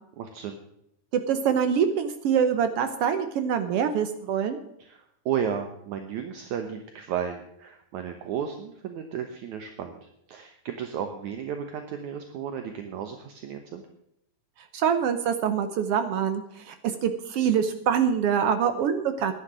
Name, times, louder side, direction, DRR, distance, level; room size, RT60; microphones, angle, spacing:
voice 1, 0.2-0.6 4.8-13.9, right 8 dB, 70° right, 6 dB, 2.2 m, -33 dB
voice 2, 1.1-4.6 14.7-16.7 17.0-19.3, right 7 dB, 85° right, 8 dB, 1.3 m, -25 dB
12.0 x 10.5 x 6.1 m, 0.77 s
omnidirectional pair, 3.9 m